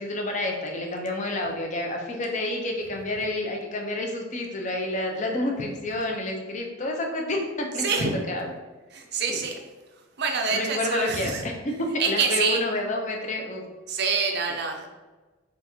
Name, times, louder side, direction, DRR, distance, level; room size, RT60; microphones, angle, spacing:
voice 1, 0.0-8.5 9.3-9.4 10.5-13.6, left 1 dB, 35° left, 1 dB, 0.6 m, -29 dB
voice 2, 7.8-8.2 8.9-9.6 10.2-11.4 12.0-12.6 13.9-14.9, right 5 dB, 50° right, 3 dB, 0.5 m, -26 dB
4.0 x 2.4 x 4.3 m, 1.2 s
head